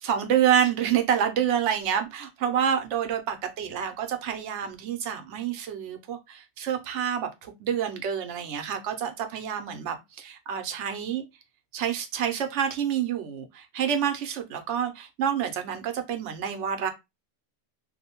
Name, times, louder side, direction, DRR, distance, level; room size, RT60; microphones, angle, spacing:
voice 1, 0.0-11.2 11.7-16.9, right 9 dB, 90° right, 0.9 m, -28 dB
2.5 x 2.1 x 2.8 m
omnidirectional pair, 1.2 m